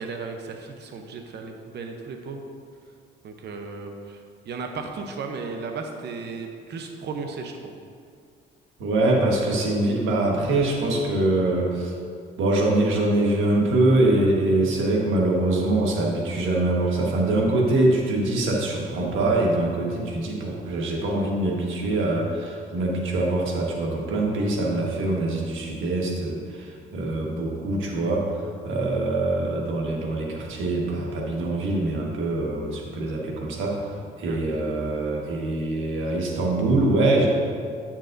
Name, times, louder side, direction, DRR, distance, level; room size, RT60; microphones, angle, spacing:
voice 1, 0.0-2.4 3.2-7.7 34.2-34.4, right 4 dB, 60° right, 3 dB, 0.8 m, -35 dB
voice 2, 8.8-11.9 12.4-28.4 28.6-37.3, right 2 dB, 80° right, -1 dB, 1.4 m, -24 dB
9.8 x 7.2 x 2.6 m, 2.2 s
cardioid pair, 90°, 20 cm